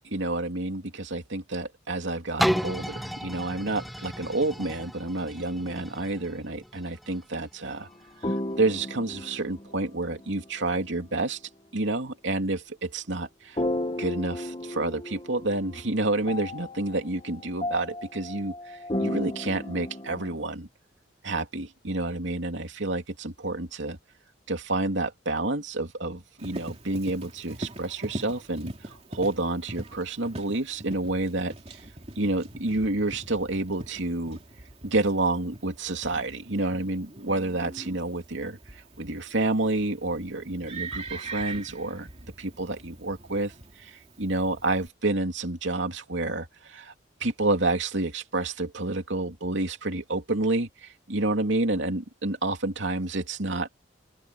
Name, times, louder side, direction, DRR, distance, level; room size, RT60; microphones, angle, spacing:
voice 1, 0.0-7.9 8.2-11.4 11.7-13.6 14.0-20.7 21.2-24.0 24.5-31.5 32.2-34.4 34.8-42.1 42.4-43.5 43.8-46.9 47.2-53.7, right 2 dB, 75° right, 2.7 m, -29 dB
sound 1, 2.4-8.1 8.7-8.8, equal, ahead, 1.0 m, -33 dB
sound 2, 8.2-10.5 13.6-15.8 16.3-20.5, left 1 dB, 25° left, 1.1 m, -34 dB
Livestock farm animals working animals, 26.4-44.9, right 2 dB, 35° right, 2.8 m, -42 dB
open air
head